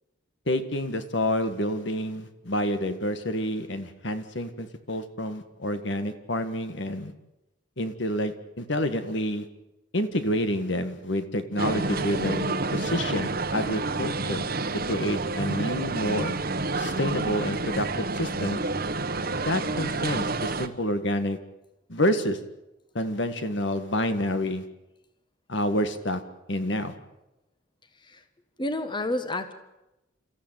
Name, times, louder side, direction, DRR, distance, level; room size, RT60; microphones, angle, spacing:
voice 1, 0.5-7.1 7.8-9.5 9.9-14.5 14.9-16.3 16.8-18.6 19.3-21.4 21.9-22.4 23.0-24.7 25.5-26.2 26.5-26.9, left 1 dB, 60° left, 9 dB, 1.8 m, -28 dB
sound 1, 11.6-20.7, right 3 dB, 45° right, 1.3 m, -29 dB
voice 2, 28.6-29.5, left 1 dB, 20° left, 9 dB, 1.4 m, -29 dB
29.5 x 14.5 x 9.1 m, 0.94 s
head